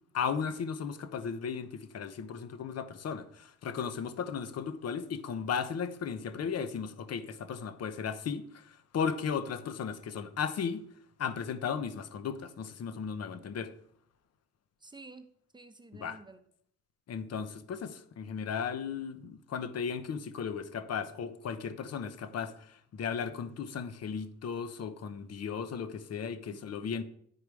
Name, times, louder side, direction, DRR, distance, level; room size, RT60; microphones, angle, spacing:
voice 1, 0.1-10.8 11.2-13.7 15.9-16.2 17.1-27.0, left 6 dB, 55° left, 1.0 m, -36 dB
voice 2, 14.8-16.4 26.5-27.0, right 3 dB, 15° right, 0.9 m, -51 dB
11.0 x 4.8 x 4.8 m
cardioid pair, 90°, 30 cm